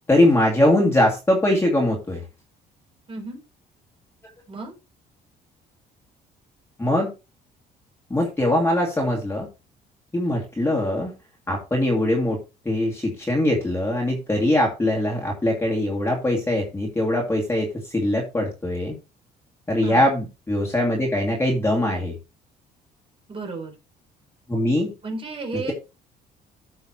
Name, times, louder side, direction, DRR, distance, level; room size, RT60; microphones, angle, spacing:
voice 1, 0.1-2.2 6.8-7.1 8.1-9.5 10.1-11.1 11.5-12.4 12.6-18.9 19.7-22.2 24.5-24.9, left 1 dB, 15° left, -1 dB, 2.4 m, -22 dB
voice 2, 3.1-3.4 4.5-4.7 19.8-20.1 23.3-23.7 25.0-25.7, right 3 dB, 35° right, 2 dB, 3.8 m, -33 dB
13.5 x 5.6 x 3.0 m, 0.28 s
cardioid pair, 110°, 17 cm